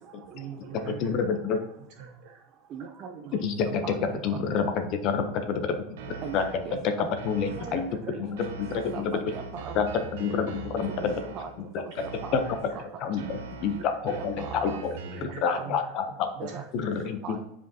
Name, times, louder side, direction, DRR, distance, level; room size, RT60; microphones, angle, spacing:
voice 1, 0.2-1.4 1.9-2.4 3.2-3.8 4.1-4.2 6.0-6.8 7.7-8.2 8.7-9.1 10.0-10.4 12.3-12.8 13.2-13.3 14.1-14.2 15.1-15.9 16.5-17.0, right 7 dB, 45° right, -1 dB, 1.9 m, -45 dB
voice 2, 1.0-1.6 3.4-3.8 4.2-5.9 6.3-6.5 6.8-7.8 8.2-9.1 9.8-9.9 10.2-11.1 12.3-12.4 13.0-15.0 15.4-16.3 16.7-17.4, left 6 dB, 35° left, 7 dB, 0.5 m, -28 dB
voice 3, 2.7-3.2 3.8-4.0 6.2-7.1 7.6-8.2 8.9-9.8 11.0-11.1 11.3-11.5 11.8-11.9 12.2-12.4 13.7-13.8 14.1-14.8 15.1-15.2 15.5-15.6 16.4-16.6 17.2-17.4, right 6 dB, 25° right, 4 dB, 0.4 m, -39 dB
sound 1, 6.0-6.8 7.2-8.0 8.4-11.6 12.0-12.8 13.2-15.4, right 4 dB, 85° right, 1.1 m, -42 dB
9.6 x 5.0 x 2.7 m, 0.85 s
supercardioid pair, 180°, 0 cm